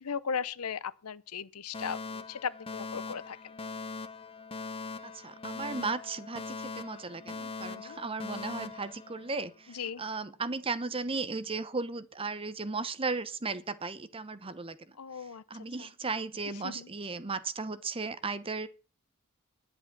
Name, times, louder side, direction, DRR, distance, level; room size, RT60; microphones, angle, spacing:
voice 1, 0.0-3.4 7.7-8.0 9.7-10.0 15.0-15.4 16.6-16.9, left 6 dB, 80° left, 0.7 m, -37 dB
Alarm, 1.7-9.8, left 4 dB, 25° left, 0.8 m, -41 dB
voice 2, 5.0-14.9 15.2-18.7, right 4 dB, 25° right, 0.8 m, -36 dB
11.0 x 7.9 x 6.0 m
head